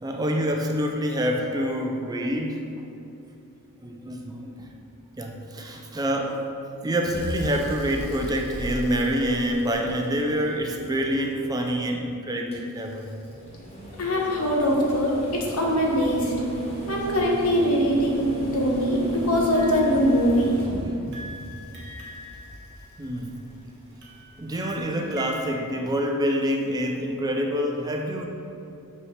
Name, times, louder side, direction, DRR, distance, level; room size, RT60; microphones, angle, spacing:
voice 1, 0.0-2.7 3.8-4.7 5.2-6.5 6.8-13.1 23.0-23.4 24.4-28.3, equal, 15° right, 1 dB, 0.4 m, -26 dB
sound 1, 7.1-11.2 12.5-23.7 25.3-25.4, equal, 30° left, 1.1 m, -34 dB
voice 2, 14.0-16.3 16.9-20.6, equal, 75° left, -2 dB, 1.0 m, -22 dB
sound 2, 19.5-20.7 21.1-23.4 24.0-25.5, equal, 50° right, 1.1 m, -42 dB
5.6 x 5.6 x 3.2 m, 2.7 s
head